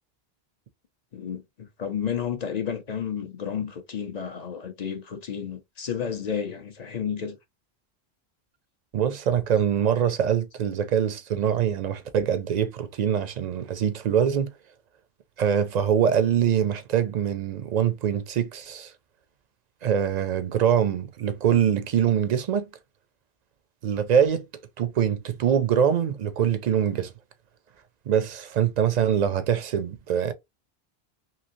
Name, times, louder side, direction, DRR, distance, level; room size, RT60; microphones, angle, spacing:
voice 1, 1.1-7.4, left 7 dB, 45° left, 0.7 m, -31 dB
voice 2, 8.9-14.5 15.4-18.9 19.8-22.7 23.8-24.4 24.8-27.1 28.1-30.3, right 8 dB, 55° right, 0.5 m, -24 dB
3.1 x 2.8 x 2.6 m
omnidirectional pair, 1.0 m